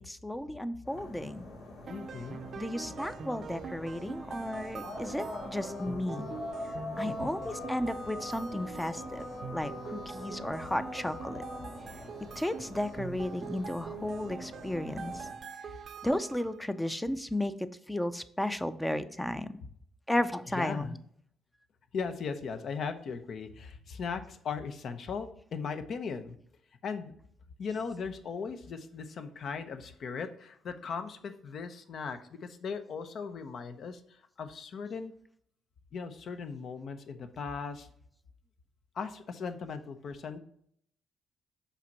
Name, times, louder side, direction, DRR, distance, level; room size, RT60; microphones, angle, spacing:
voice 1, 0.1-1.5 2.6-6.3 7.0-9.2 9.5-11.4 12.4-15.3 16.0-17.5 17.9-19.5 20.1-21.0, left 1 dB, 10° left, 12 dB, 0.5 m, -34 dB
sound 1, 0.8-15.3, left 1 dB, 85° left, 3.0 m, -43 dB
voice 2, 1.9-2.4 7.0-7.5 20.5-20.9 21.9-26.4 26.8-27.1 27.6-35.1 35.9-37.9 38.9-40.4, left 5 dB, 60° left, 9 dB, 0.8 m, -38 dB
sound 2, 1.9-16.6, right 6 dB, 55° right, 0.5 m, -44 dB
5.7 x 4.2 x 5.9 m, 0.67 s
cardioid pair, 90°, 0 cm